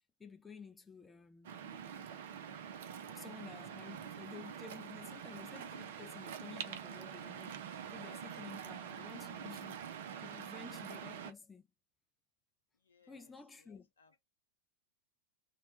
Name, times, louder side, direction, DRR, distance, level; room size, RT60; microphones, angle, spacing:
voice 1, 0.2-1.5 2.5-9.8 10.2-11.7 13.1-13.9, left 5 dB, 15° left, 0.4 m, -53 dB
Waves surf, 1.4-11.3, right 8 dB, 55° right, 0.4 m, -46 dB
voice 2, 12.7-14.2, left 4 dB, 70° left, 0.6 m, -69 dB
2.7 x 2.1 x 2.5 m
figure-of-eight pair, 90°, 0 cm